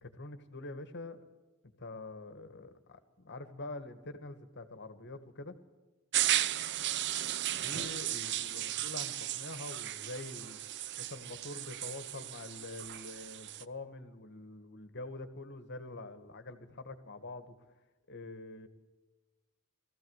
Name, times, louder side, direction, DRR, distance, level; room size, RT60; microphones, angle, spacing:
voice 1, 0.0-1.2 1.8-5.5 7.6-10.6 11.0-17.6 18.1-18.7, left 2 dB, 55° left, 10 dB, 1.8 m, -45 dB
sound 1, 6.1-13.6, right 12 dB, 55° right, 0.6 m, -35 dB
21.5 x 15.0 x 8.2 m, 1.2 s
head